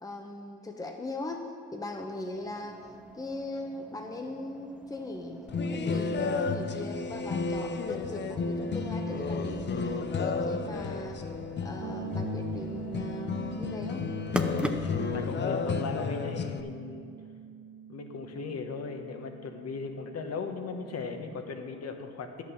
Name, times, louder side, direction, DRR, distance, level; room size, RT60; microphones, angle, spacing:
voice 1, 0.0-2.8 3.1-5.4 5.7-11.2 11.6-14.1, left 2 dB, 10° left, 3 dB, 0.9 m, -39 dB
sound 1, 2.3-15.2, right 1 dB, 5° right, 0.6 m, -43 dB
sound 2, 5.5-16.6, left 4 dB, 35° left, 0.6 m, -32 dB
sound 3, 11.8-21.5, right 8 dB, 75° right, 1.1 m, -44 dB
voice 2, 14.7-17.1 17.9-22.4, left 4 dB, 55° left, 5 dB, 1.2 m, -38 dB
10.5 x 6.4 x 7.1 m, 2.3 s
cardioid pair, 90°, 30 cm